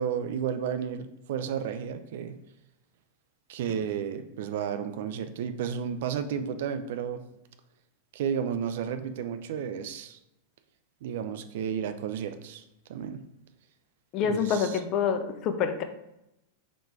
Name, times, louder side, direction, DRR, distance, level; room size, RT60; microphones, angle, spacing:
voice 1, 0.0-2.4 3.5-7.2 8.1-10.2 11.0-12.6 12.9-13.2 14.2-14.8, right 8 dB, 55° right, 10 dB, 0.3 m, -32 dB
voice 2, 14.1-15.8, left 7 dB, 40° left, 8 dB, 0.4 m, -27 dB
4.0 x 3.3 x 3.2 m, 0.87 s
figure-of-eight pair, 90°, 0 cm